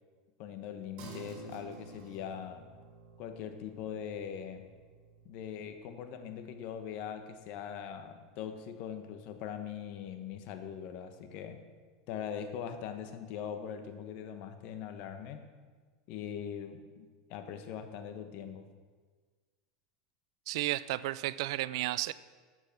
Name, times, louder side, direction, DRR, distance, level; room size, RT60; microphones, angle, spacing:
voice 1, 0.4-2.7 3.2-4.6 5.2-11.6 12.1-15.5 16.1-18.7, left 8 dB, 55° left, 8 dB, 1.3 m, -41 dB
sound 1, 1.0-10.7, right 3 dB, 45° right, 3.4 m, -54 dB
voice 2, 20.5-22.1, right 16 dB, 70° right, 17 dB, 0.4 m, -33 dB
12.0 x 7.8 x 5.9 m, 1.5 s
supercardioid pair, 125°, 3 cm